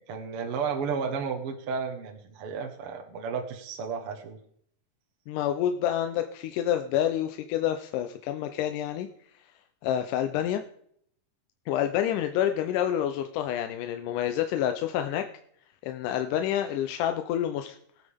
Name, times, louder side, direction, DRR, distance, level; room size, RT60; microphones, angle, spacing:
voice 1, 0.1-4.4, right 5 dB, 55° right, 2 dB, 1.8 m, -33 dB
voice 2, 5.3-9.1 9.8-10.6 11.7-15.3 15.8-17.8, left 10 dB, 80° left, 7 dB, 2.2 m, -28 dB
21.5 x 9.1 x 3.5 m, 0.66 s
omnidirectional pair, 3.8 m